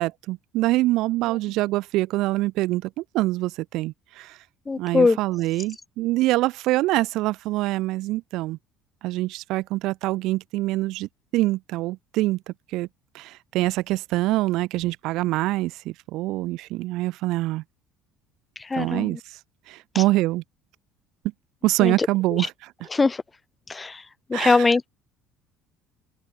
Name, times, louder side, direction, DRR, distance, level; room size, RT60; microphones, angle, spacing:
voice 1, 0.0-4.4 4.8-8.6 9.0-12.9 13.1-17.6 18.8-19.4 19.7-20.4 21.6-22.5 22.8-22.9 24.3-24.7, right 18 dB, 65° right, 1.5 m, -25 dB
voice 2, 4.7-5.2 18.6-19.2 19.9-20.0 21.8-22.1 22.9-23.2 23.7-24.0 24.3-24.9, left 4 dB, 15° left, 3.4 m, -21 dB
open air
cardioid pair, 150°, 0 cm